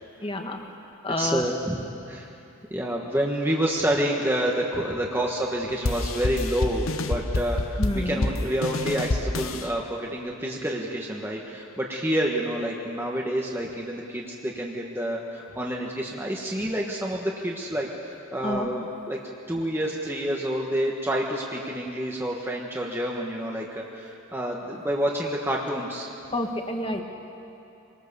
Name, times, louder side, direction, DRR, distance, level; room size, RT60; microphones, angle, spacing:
voice 1, 0.2-0.6 1.0-1.5 7.8-8.3 16.6-16.7 18.4-18.7 26.3-27.0, left 1 dB, 25° left, 3 dB, 1.6 m, -28 dB
voice 2, 1.2-2.3 2.7-7.8 8.0-19.2 19.5-26.1, right 1 dB, 10° right, -2 dB, 1.4 m, -28 dB
sound 1, 5.8-9.7, left 2 dB, 75° left, 1.0 m, -28 dB
25.5 x 19.0 x 7.0 m, 2.7 s
head